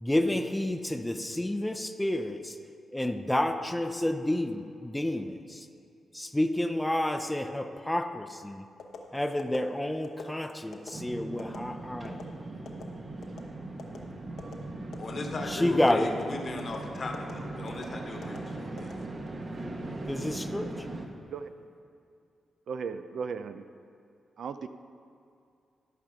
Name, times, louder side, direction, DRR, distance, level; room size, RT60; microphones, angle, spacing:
voice 1, 0.0-2.5 2.9-5.6 6.1-8.6 9.1-12.2 15.5-16.1 20.1-20.8, left 1 dB, 10° left, 7 dB, 0.6 m, -29 dB
sound 1, 8.8-9.0 9.4-9.6 10.0-10.3 10.7-10.9 11.4-11.6 12.0-12.2 12.7-12.8 13.2-13.5 13.8-14.0 14.4-14.6 14.9-15.2 15.5-15.7 16.1-16.2 16.6-16.8 17.1-17.3 17.7-17.9 18.2-18.4 18.8-19.4 19.9-20.1, left 6 dB, 80° left, 0.9 m, -43 dB
sound 2, 10.9-21.1, right 2 dB, 50° right, 1.1 m, -39 dB
voice 2, 15.0-18.9, left 2 dB, 50° left, 3 dB, 1.2 m, -37 dB
voice 3, 22.7-23.7 24.4-24.7, right 6 dB, 75° right, 10 dB, 0.4 m, -36 dB
13.0 x 5.0 x 5.9 m, 2.4 s
cardioid pair, 65°, 0 cm